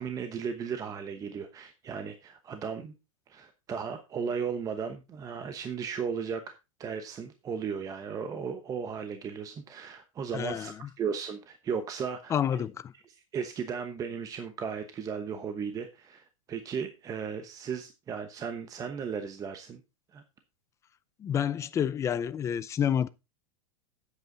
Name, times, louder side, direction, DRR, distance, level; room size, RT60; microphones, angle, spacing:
voice 1, 0.0-2.9 3.3-6.5 6.8-12.6 13.1-19.8 20.1-20.2, right 6 dB, 20° right, 1.0 m, -36 dB
voice 2, 10.3-10.7 12.3-12.9 21.2-23.1, left 9 dB, 15° left, 0.5 m, -29 dB
9.1 x 8.2 x 3.9 m
supercardioid pair, 145°, 17 cm